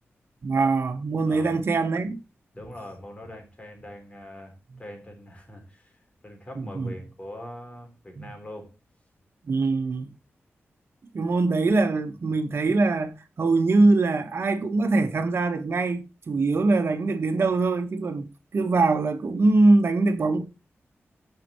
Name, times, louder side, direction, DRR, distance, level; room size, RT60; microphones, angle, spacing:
voice 1, 0.4-2.2 6.6-6.9 8.2-8.3 9.4-10.1 11.1-20.4, right 3 dB, 60° right, 1.5 m, -23 dB
voice 2, 1.3-1.7 2.5-8.7, left 1 dB, 25° left, 4.1 m, -42 dB
17.5 x 6.0 x 3.1 m
wide cardioid pair, 120°, 5 cm